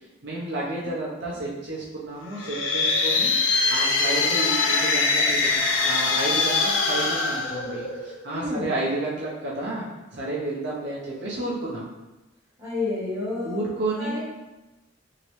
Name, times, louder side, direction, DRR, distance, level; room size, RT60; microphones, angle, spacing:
voice 1, 0.2-3.3 3.7-5.5 5.8-11.9 13.4-14.2, right 2 dB, 65° right, -6 dB, 0.7 m, -31 dB
sound 1, 2.3-8.2, left 4 dB, 80° left, 0.5 m, -23 dB
voice 2, 8.3-8.7 12.6-13.6 14.0-14.2, left 2 dB, 15° right, -10 dB, 1.4 m, -30 dB
3.0 x 2.8 x 3.1 m, 1.0 s
head